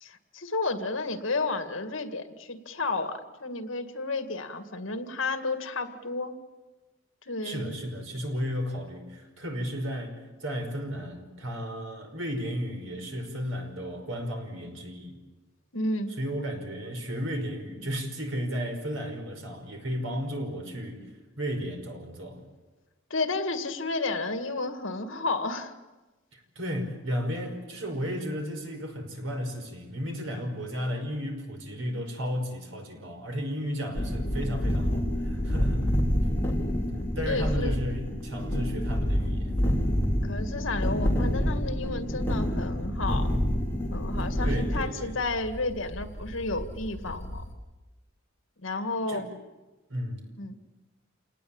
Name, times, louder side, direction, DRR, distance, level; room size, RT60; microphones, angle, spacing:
voice 1, 0.0-6.4 7.2-7.7 15.7-16.1 23.1-25.7 37.3-37.8 40.2-43.3 43.9-47.4 48.6-49.3 50.4-50.6, left 3 dB, 70° left, 8 dB, 2.1 m, -32 dB
voice 2, 7.4-15.2 16.2-21.1 21.4-22.4 26.3-35.9 37.2-39.6 44.4-45.1 49.1-49.3 49.9-50.3, equal, 75° right, 4 dB, 5.4 m, -34 dB
sound 1, 34.0-47.5, equal, 10° left, 3.6 m, -28 dB
28.0 x 19.0 x 8.9 m, 1.2 s
head